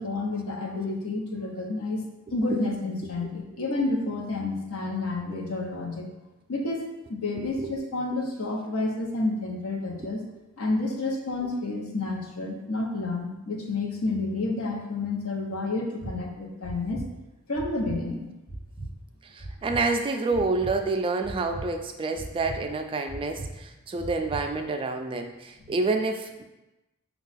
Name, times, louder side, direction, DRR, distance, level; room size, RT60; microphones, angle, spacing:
voice 1, 0.0-2.0 2.3-6.1 6.5-6.8 7.1-10.2 10.6-17.1 17.5-18.3, left 2 dB, 85° left, 1 dB, 0.8 m, -30 dB
voice 2, 7.3-7.7 10.0-10.1 19.2-26.4, right 3 dB, 25° right, 4 dB, 0.3 m, -28 dB
sound 1, 16.0-16.1 16.6-17.0 17.5-18.0 18.5-18.9 19.4-19.8 20.3-20.7 21.2-21.6 22.1-22.6 23.1-23.5 24.0-24.4, right 2 dB, 5° left, 1.2 m, -37 dB
4.6 x 2.3 x 4.0 m, 1.0 s
head